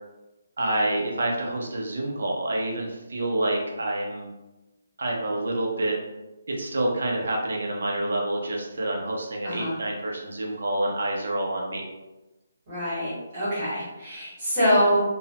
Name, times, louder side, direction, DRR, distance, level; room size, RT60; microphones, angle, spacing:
voice 1, 0.6-4.3 5.0-6.0 6.6-11.9, right 1 dB, 60° right, -1 dB, 0.5 m, -27 dB
voice 2, 12.7-15.0, equal, 15° right, -11 dB, 1.2 m, -24 dB
2.7 x 2.0 x 2.8 m, 1.1 s
hypercardioid pair, 180°, 0 cm